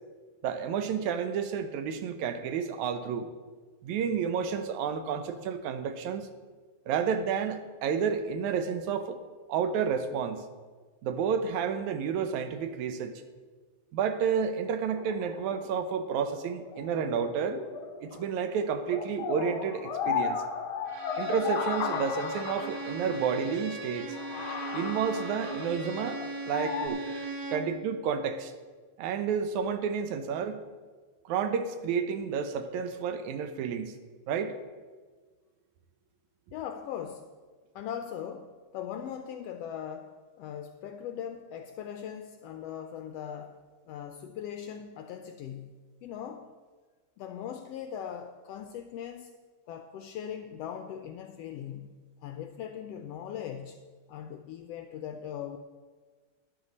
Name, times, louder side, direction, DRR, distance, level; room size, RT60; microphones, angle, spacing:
voice 1, 0.4-3.3 3.8-6.3 6.9-9.2 9.5-10.5 11.0-13.2 13.9-17.6 18.0-20.4 21.2-24.1 24.7-26.2 26.5-27.0 27.5-28.5 29.0-30.6 31.3-33.9 34.3-34.6, right 7 dB, 85° right, 9 dB, 2.2 m, -30 dB
sound 1, 14.9-18.5 18.8-23.3 23.8-23.9 24.1-26.9, left 7 dB, 60° left, 1.5 m, -35 dB
Bowed string instrument, 20.9-27.8, right 2 dB, 60° right, 1.3 m, -39 dB
voice 2, 36.5-37.3 37.7-43.6 43.9-46.5 47.2-49.3 49.7-52.0 52.2-53.8 54.1-55.6, left 9 dB, 80° left, 7 dB, 1.4 m, -40 dB
12.5 x 10.5 x 4.1 m, 1.4 s
omnidirectional pair, 3.3 m